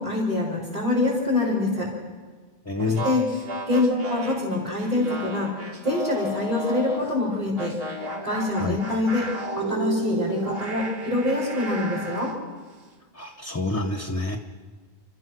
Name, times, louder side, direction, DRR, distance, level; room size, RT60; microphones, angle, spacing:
voice 1, 0.0-1.9 2.8-3.2 3.7-5.5 5.8-7.7 8.2-9.3 9.6-12.3, left 2 dB, 35° right, -8 dB, 5.4 m, -25 dB
voice 2, 2.7-3.0 8.6-8.8 13.1-14.4, left 3 dB, 15° left, 6 dB, 1.0 m, -27 dB
sound 1, 2.8-7.1 7.6-12.4, right 2 dB, 70° right, 2.0 m, -33 dB
30.0 x 14.0 x 6.2 m, 1.4 s
omnidirectional pair, 1.0 m